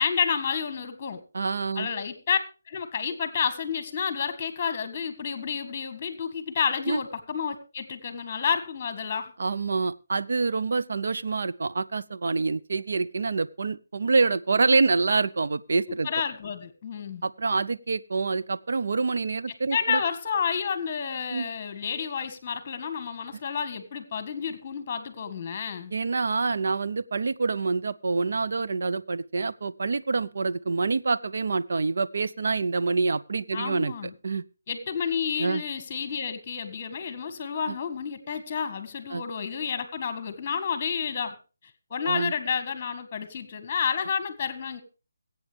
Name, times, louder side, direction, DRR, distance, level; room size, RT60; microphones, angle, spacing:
voice 1, 0.0-1.2 1.7-2.4 2.7-9.3 16.0-17.2 19.7-25.9 33.5-34.1 34.7-41.4 41.9-44.8, left 6 dB, 25° left, 11 dB, 1.7 m, -30 dB
voice 2, 1.3-1.9 6.9-7.0 9.4-16.1 17.2-20.0 21.3-21.5 25.9-33.9 34.2-34.4 35.4-35.6 37.7-37.8 39.1-39.2 42.0-42.3, right 4 dB, 60° right, 13 dB, 0.7 m, -26 dB
22.5 x 8.4 x 3.4 m, 0.33 s
figure-of-eight pair, 160°, 0 cm